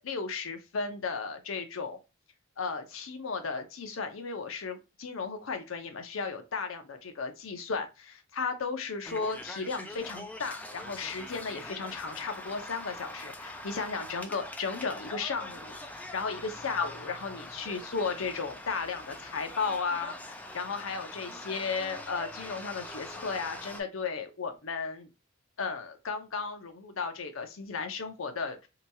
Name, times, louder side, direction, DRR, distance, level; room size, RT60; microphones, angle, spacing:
voice 1, 0.0-2.0 2.6-25.1 25.6-28.7, left 5 dB, 70° left, 0.6 m, -35 dB
sound 1, 9.0-23.8, left 1 dB, 5° left, 0.3 m, -43 dB
2.8 x 2.3 x 2.6 m
head